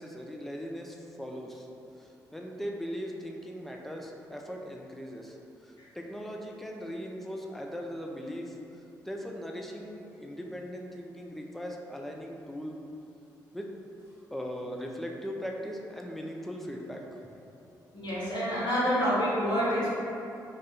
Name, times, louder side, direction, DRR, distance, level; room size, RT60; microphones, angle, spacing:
voice 1, 0.0-1.7 2.0-5.4 5.6-12.8 13.5-13.7 14.3-17.2, equal, ahead, 0 dB, 0.4 m, -39 dB
voice 2, 17.9-19.9, equal, 55° left, -8 dB, 1.1 m, -27 dB
2.4 x 2.3 x 4.0 m, 2.7 s
hypercardioid pair, 40°, 10 cm